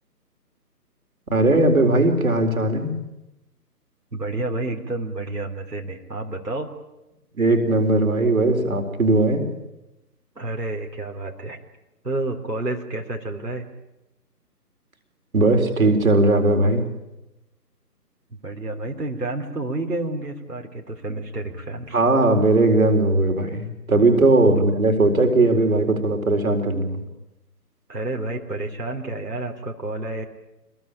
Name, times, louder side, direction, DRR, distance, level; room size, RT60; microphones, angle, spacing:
voice 1, 1.3-2.9 7.4-9.5 15.3-16.8 21.9-27.0, right 2 dB, 55° right, 5 dB, 4.3 m, -18 dB
voice 2, 4.1-6.7 10.4-11.6 12.0-13.6 18.3-22.0 24.6-24.7 27.9-30.2, right 2 dB, 75° right, 1 dB, 3.9 m, -30 dB
26.5 x 21.5 x 9.0 m, 0.95 s
figure-of-eight pair, 145°, 49 cm